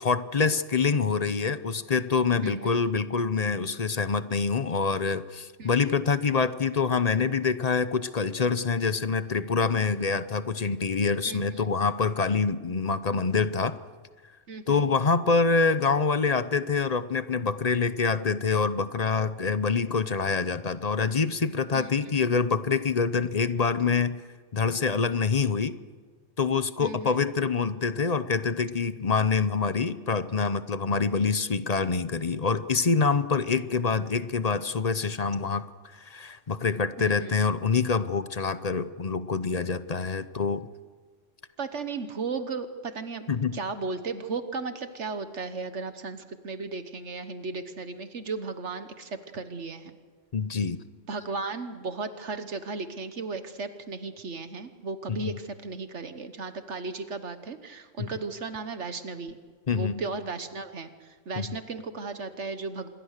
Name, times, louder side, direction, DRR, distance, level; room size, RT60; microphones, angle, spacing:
voice 1, 0.0-13.8 14.7-24.2 24.5-25.8 26.4-35.6 36.0-40.7 43.3-43.6 50.3-50.8 55.1-55.3 58.0-58.1 59.7-59.9 61.4-61.6, left 5 dB, 35° left, 13 dB, 0.8 m, -26 dB
voice 2, 11.3-11.7 14.5-14.9 21.7-22.2 26.8-27.2 37.0-37.3 41.6-43.2 43.5-49.9 51.1-59.4 59.7-62.9, right 4 dB, 65° right, 10 dB, 1.5 m, -35 dB
27.0 x 22.0 x 6.6 m, 1.5 s
omnidirectional pair, 1.3 m